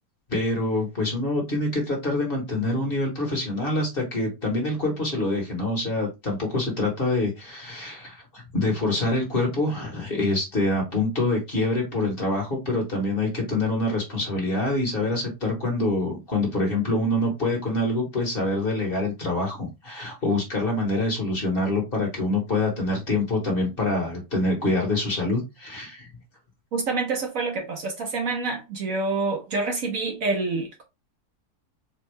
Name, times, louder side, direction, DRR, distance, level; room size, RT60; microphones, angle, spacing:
voice 1, 0.3-26.1, left 2 dB, 35° left, 1.3 m, -26 dB
voice 2, 26.7-30.8, right 3 dB, 60° right, 1.1 m, -27 dB
4.4 x 2.3 x 3.2 m
omnidirectional pair, 1.8 m